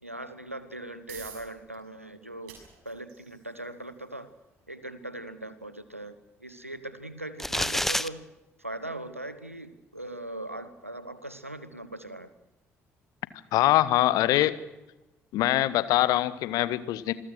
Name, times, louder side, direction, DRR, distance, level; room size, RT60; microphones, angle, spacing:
voice 1, 0.0-2.6 2.8-4.3 4.7-8.3 8.6-12.3, right 1 dB, 90° right, 14 dB, 1.0 m, -40 dB
sound 1, 1.1-15.5, right 8 dB, 65° right, 6.7 m, -57 dB
sound 2, 7.4-8.1, left 1 dB, 5° left, 0.9 m, -27 dB
voice 2, 13.5-14.5 15.3-17.1, left 15 dB, 60° left, 16 dB, 1.2 m, -23 dB
26.5 x 21.0 x 6.4 m, 1.0 s
figure-of-eight pair, 50°, 7 cm